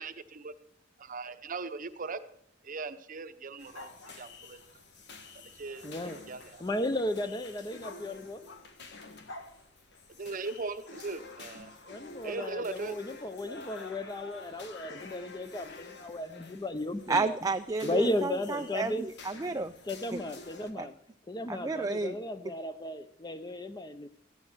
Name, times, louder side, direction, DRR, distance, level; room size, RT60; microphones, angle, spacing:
voice 1, 0.0-0.5 1.0-2.2 2.6-3.9 4.2-4.6 5.6-6.4 10.2-11.7 12.2-13.0, right 4 dB, 45° right, 11 dB, 0.8 m, -39 dB
sound 1, 3.6-20.7, left 3 dB, 60° left, 1.4 m, -50 dB
sound 2, 3.7-4.6 7.8-8.9 9.3-9.6 10.8-11.1 12.4-14.6, left 2 dB, 85° left, 1.4 m, -50 dB
voice 2, 5.8-6.2 6.6-8.4 11.8-17.5 17.8-19.1 19.8-21.0 21.3-24.1, left 1 dB, 20° left, 11 dB, 0.7 m, -35 dB
voice 3, 17.1-19.7 20.1-20.2 20.8-20.9 21.5-22.2, right 3 dB, 20° right, 8 dB, 0.4 m, -31 dB
14.0 x 9.5 x 6.2 m, 0.71 s
head